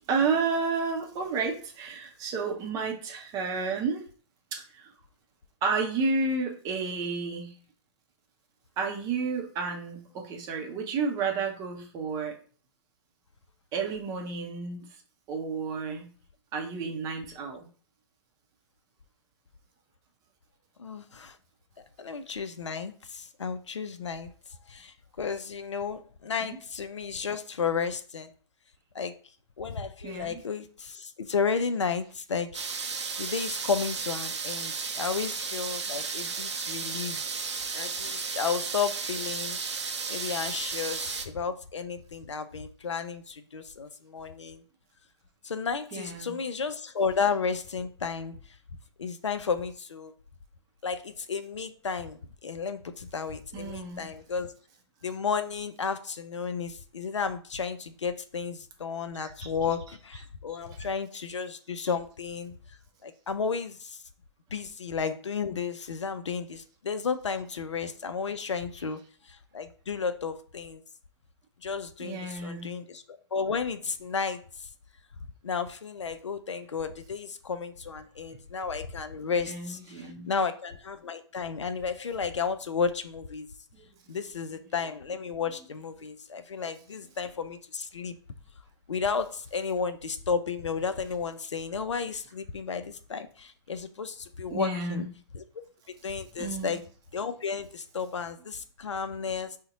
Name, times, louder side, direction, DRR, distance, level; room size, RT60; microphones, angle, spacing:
voice 1, 0.1-4.0 4.5-4.9 5.6-7.5 8.8-12.3 13.7-14.9 15.3-16.1 16.5-17.7 26.4-26.6 30.0-30.4 45.9-46.4 53.5-54.1 59.2-59.3 72.0-72.7 79.5-80.3 83.7-83.9 94.5-95.0 96.4-96.8, right 4 dB, 25° right, 3 dB, 0.6 m, -31 dB
voice 2, 20.8-21.4 22.0-24.3 24.7-28.3 28.9-29.2 29.6-32.6 33.2-39.6 40.1-44.6 45.4-48.4 49.0-50.1 50.8-54.5 55.0-62.6 63.0-64.0 64.5-70.8 71.6-74.7 75.4-83.5 84.1-88.2 88.9-95.1 95.3-95.4 96.0-96.9 97.1-99.6, left 5 dB, 80° left, 10 dB, 0.4 m, -33 dB
sound 1, 32.5-41.2, right 5 dB, 70° right, 0.5 m, -34 dB
2.6 x 2.1 x 3.8 m, 0.41 s
figure-of-eight pair, 115°, 15 cm